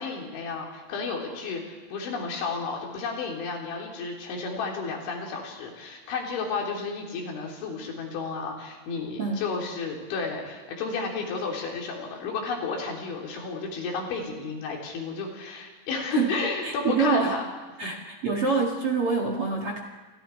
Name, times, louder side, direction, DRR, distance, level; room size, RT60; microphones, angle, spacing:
voice 1, 0.0-17.4 17.8-17.9, left 4 dB, 85° left, 0 dB, 5.8 m, -32 dB
voice 2, 16.1-17.3 17.8-19.8, right 5 dB, 45° right, 2 dB, 2.0 m, -26 dB
29.5 x 26.5 x 4.6 m, 1.3 s
omnidirectional pair, 5.2 m